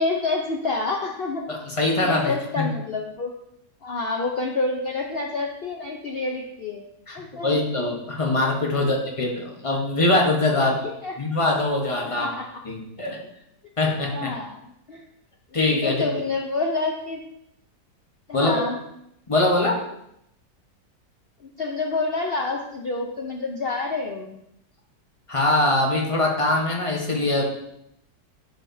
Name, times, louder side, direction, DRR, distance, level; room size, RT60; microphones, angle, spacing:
voice 1, 0.0-1.4 2.0-3.3 3.8-6.8 7.1-7.6 8.7-8.9 10.8-11.1 12.1-12.5 14.1-15.0 15.8-17.2 18.3-18.8 21.4-24.4, left 3 dB, 85° left, 1 dB, 0.5 m, -28 dB
voice 2, 1.5-2.7 7.1-10.8 11.2-12.4 12.6-13.2 13.8-14.3 15.5-16.0 18.3-18.6 19.3-19.8 25.3-27.4, left 2 dB, 25° left, 0 dB, 0.8 m, -23 dB
11.5 x 4.2 x 2.6 m, 0.78 s
omnidirectional pair, 1.9 m